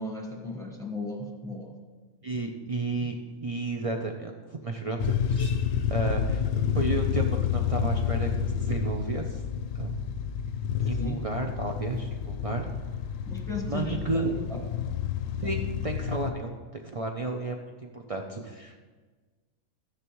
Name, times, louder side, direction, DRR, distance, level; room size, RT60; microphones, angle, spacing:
voice 1, 0.0-1.7 10.9-11.2 13.3-14.2 14.5-14.6, left 2 dB, 5° left, 0 dB, 1.1 m, -36 dB
voice 2, 2.2-3.1 3.4-5.5 5.9-9.4 9.7-9.9 10.9-12.7 13.7-14.3 15.4-18.8, right 3 dB, 60° right, 2 dB, 0.3 m, -32 dB
sound 1, 5.0-16.3, left 9 dB, 70° left, 0.9 m, -29 dB
13.5 x 9.9 x 3.1 m, 1.4 s
omnidirectional pair, 1.5 m